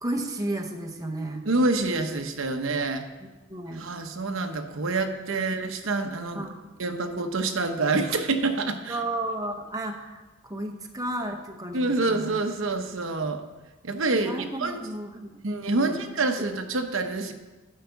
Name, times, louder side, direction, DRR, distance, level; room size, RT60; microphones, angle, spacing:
voice 1, 0.0-1.4 3.5-3.9 5.4-5.5 6.3-6.7 8.9-12.4 14.1-15.5 15.8-15.9, right 1 dB, 15° right, 3 dB, 0.9 m, -33 dB
voice 2, 1.4-3.0 3.7-6.5 6.8-9.0 11.7-13.4 13.8-14.9 15.4-17.3, right 3 dB, 65° right, 6 dB, 0.9 m, -27 dB
11.5 x 5.7 x 7.0 m, 1.2 s
head